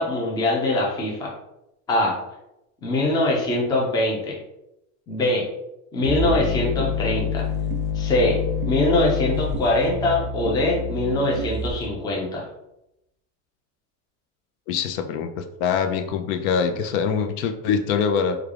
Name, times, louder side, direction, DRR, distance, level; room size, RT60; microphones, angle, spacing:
voice 1, 0.0-1.3 1.9-2.2 2.8-4.4 5.1-5.5 5.9-7.4 7.9-8.4 8.6-12.4, left 2 dB, 10° left, -2 dB, 0.4 m, -22 dB
sound 1, 6.0-12.0, left 5 dB, 40° left, 0.8 m, -27 dB
sound 2, 6.8-6.9 7.7-7.8 8.6-8.8 9.5-9.7 10.5-10.6 11.4-11.5, right 10 dB, 80° right, 0.5 m, -35 dB
voice 2, 14.7-18.4, left 6 dB, 70° left, 6 dB, 0.6 m, -24 dB
3.2 x 2.3 x 3.6 m, 0.87 s
cardioid pair, 160°, 39 cm